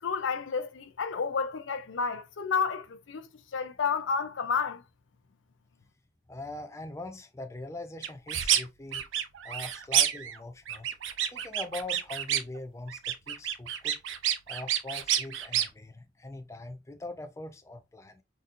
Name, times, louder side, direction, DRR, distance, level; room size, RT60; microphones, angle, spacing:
voice 1, 0.0-4.8, left 5 dB, 85° left, 0.5 m, -31 dB
voice 2, 6.3-9.0 9.4-10.9 11.3-14.0 14.5-18.2, left 2 dB, 15° left, 0.4 m, -42 dB
sound 1, 8.0-8.6 8.9-10.4 10.7-12.6 12.9-15.7, right 10 dB, 85° right, 0.5 m, -29 dB
3.9 x 2.6 x 2.5 m
head